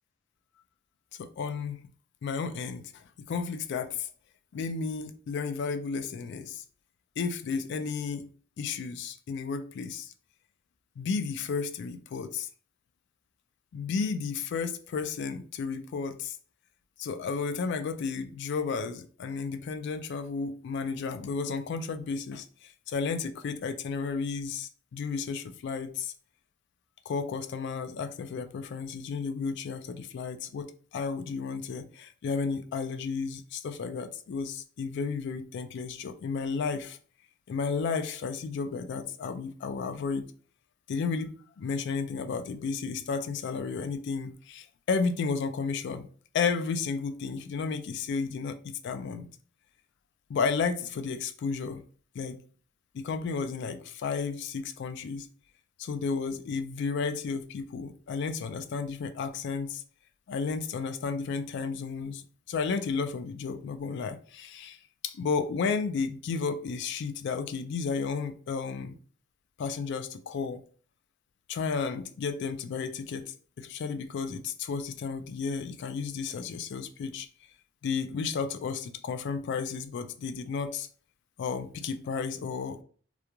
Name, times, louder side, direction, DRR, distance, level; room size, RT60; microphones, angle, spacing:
voice 1, 1.2-1.8 2.2-4.1 4.5-6.6 7.2-8.3 8.6-10.1 11.0-12.5 13.7-16.4 17.0-26.1 27.1-37.0 37.5-40.3 40.9-46.1 46.3-48.6 48.8-49.3 50.3-51.8 52.1-52.4 52.9-55.3 55.8-59.8 60.3-64.8 65.0-68.9 69.6-70.6 71.5-77.3 77.8-80.9 81.4-82.8, left 5 dB, 60° left, 0.3 m, -33 dB
2.4 x 2.2 x 2.9 m
head